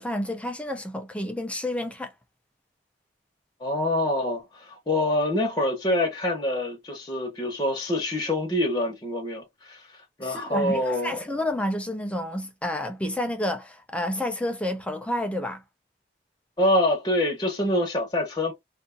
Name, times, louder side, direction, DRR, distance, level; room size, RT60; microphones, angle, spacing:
voice 1, 0.0-2.1 10.2-15.6, left 1 dB, 5° left, 0.3 m, -30 dB
voice 2, 3.6-9.8 10.2-11.2 16.6-18.5, left 1 dB, 20° left, 0.9 m, -25 dB
2.5 x 2.3 x 2.4 m
head